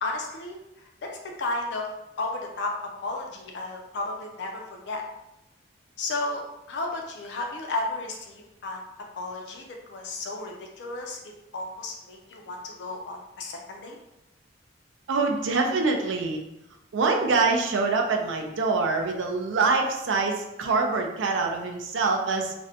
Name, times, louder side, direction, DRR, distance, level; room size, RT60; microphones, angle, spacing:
voice 1, 0.0-1.9 2.2-2.8 3.0-5.0 6.0-6.4 6.7-8.8 9.2-14.0, left 2 dB, 65° left, 1 dB, 0.4 m, -33 dB
voice 2, 15.1-16.4 16.9-22.5, right 4 dB, 90° right, 3 dB, 0.4 m, -25 dB
2.5 x 2.1 x 2.7 m, 0.89 s
head